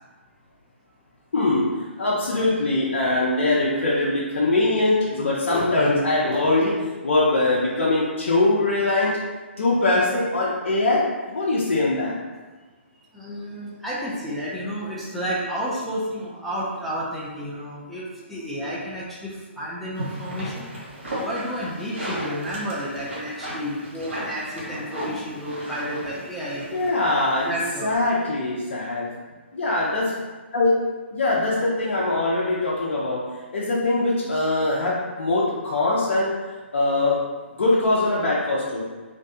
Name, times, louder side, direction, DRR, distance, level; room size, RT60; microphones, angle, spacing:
voice 1, 1.3-6.8 7.0-9.2 9.6-12.2 26.7-27.5 27.8-29.1 29.5-30.1 30.5-33.2 33.5-36.3 36.7-37.2 37.6-38.8, left 2 dB, 70° left, -6 dB, 0.5 m, -22 dB
voice 2, 13.1-20.7 21.1-26.8 27.5-27.9, equal, ahead, -8 dB, 0.4 m, -31 dB
sound 1, 19.9-28.0, equal, 70° right, 1.1 m, -35 dB
2.5 x 2.2 x 2.7 m, 1.3 s
hypercardioid pair, 145°, 7 cm